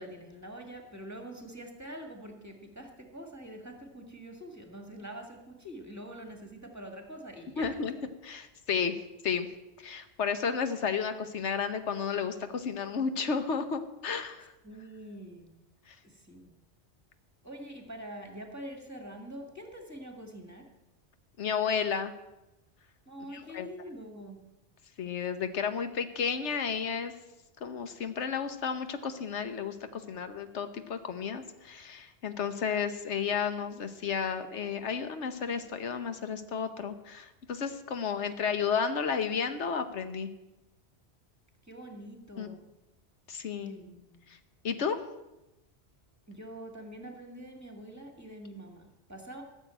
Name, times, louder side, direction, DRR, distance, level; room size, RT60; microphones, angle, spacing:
voice 1, 0.0-7.9 14.6-15.5 16.0-16.5 17.4-20.7 23.1-24.4 41.6-42.6 43.6-44.3 46.3-49.4, right 1 dB, 15° right, 3 dB, 2.0 m, -45 dB
voice 2, 7.6-7.9 8.3-8.9 9.2-9.5 9.8-14.5 15.9-16.0 21.4-22.1 23.3-23.7 25.0-27.1 27.6-40.3 42.4-42.5 43.3-43.7 44.6-45.0, left 6 dB, 80° left, 9 dB, 1.3 m, -32 dB
14.5 x 7.1 x 8.9 m, 0.97 s
omnidirectional pair, 1.2 m